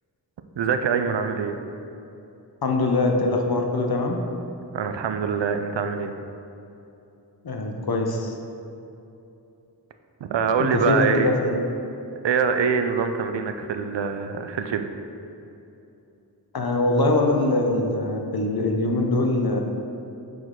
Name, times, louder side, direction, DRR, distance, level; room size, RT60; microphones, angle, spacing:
voice 1, 0.6-1.6 4.7-6.1 10.3-11.3 12.2-14.9, right 6 dB, 85° right, 7 dB, 0.5 m, -24 dB
voice 2, 2.6-4.2 7.4-8.4 10.6-11.6 16.5-19.6, left 2 dB, 60° left, 2 dB, 0.8 m, -23 dB
6.0 x 5.0 x 3.8 m, 2.8 s
wide cardioid pair, 65°, 42 cm